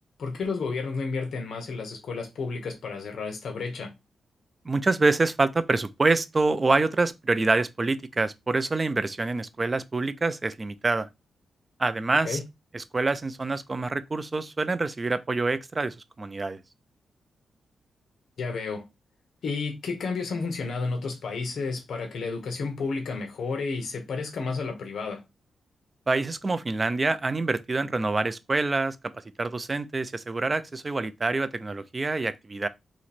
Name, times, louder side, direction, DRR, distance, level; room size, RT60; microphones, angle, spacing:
voice 1, 0.2-3.9 12.2-12.4 18.4-18.8 19.4-25.2, left 4 dB, 65° left, 0.9 m, -31 dB
voice 2, 4.7-11.1 11.8-12.4 12.7-16.6 26.1-29.0 29.4-32.7, right 3 dB, 25° right, 0.4 m, -26 dB
3.0 x 2.9 x 4.1 m
wide cardioid pair, 150°, 0 cm